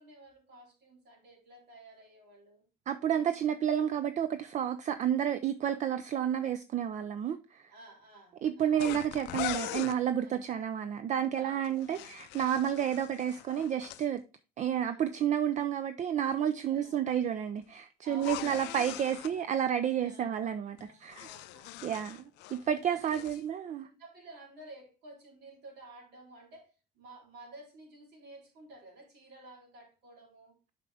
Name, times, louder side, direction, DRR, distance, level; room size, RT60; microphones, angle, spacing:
voice 1, 0.0-2.6 7.7-8.9 10.2-10.5 11.4-12.2 12.7-12.9 14.8-15.1 16.7-17.0 18.0-19.5 20.0-20.4 20.8-20.9 21.2-21.8 22.8-23.4 23.8-30.5, right 2 dB, 75° right, 3.4 m, -53 dB
voice 2, 2.9-7.7 8.4-14.2 14.6-21.3 21.8-22.2 22.5-23.9, right 9 dB, 45° right, 0.5 m, -31 dB
sound 1, 8.8-10.0 11.6-14.1 18.1-19.3 20.8-22.7 23.0-23.4, left 16 dB, 90° left, 0.4 m, -41 dB
8.2 x 5.0 x 3.4 m
cardioid pair, 110°, 17 cm